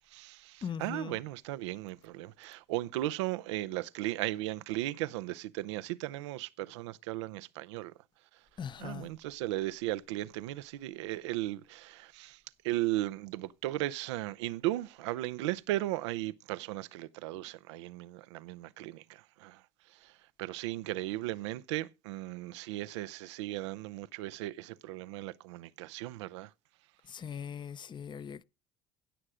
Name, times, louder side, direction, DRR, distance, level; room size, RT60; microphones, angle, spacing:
voice 1, 0.1-7.9 8.8-19.6 19.9-26.5, right 16 dB, 90° right, 0.6 m, -36 dB
voice 2, 0.6-1.2 8.6-9.1 27.0-28.4, left 7 dB, 30° left, 0.6 m, -40 dB
16.0 x 6.5 x 4.9 m
supercardioid pair, 80°, 14 cm